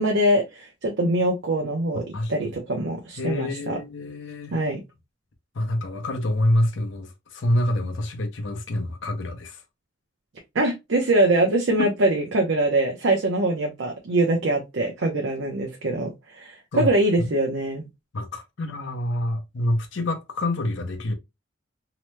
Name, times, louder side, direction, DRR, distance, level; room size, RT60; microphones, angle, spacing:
voice 1, 0.0-2.0 2.3-3.8 4.5-4.8 10.5-17.8, right 1 dB, 75° right, 0.6 m, -23 dB
voice 2, 2.1-2.6 3.2-4.6 5.5-9.6 11.8-11.9 16.7-16.9 17.2-17.3 18.1-21.1, left 1 dB, 75° left, 0.7 m, -26 dB
2.9 x 2.1 x 3.1 m
head